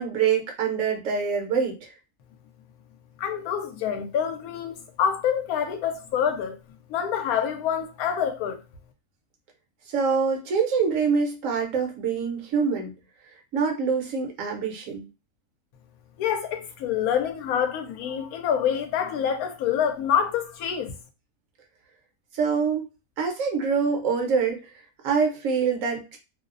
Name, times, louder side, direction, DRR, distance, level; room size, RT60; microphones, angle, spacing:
voice 1, 0.0-1.9 9.9-12.9 13.5-15.1 22.3-22.8 23.2-26.2, right 5 dB, 70° right, 1.0 m, -25 dB
voice 2, 3.2-6.6 6.9-8.6 16.2-21.0, left 8 dB, 90° left, 1.0 m, -26 dB
2.6 x 2.0 x 2.4 m
omnidirectional pair, 1.5 m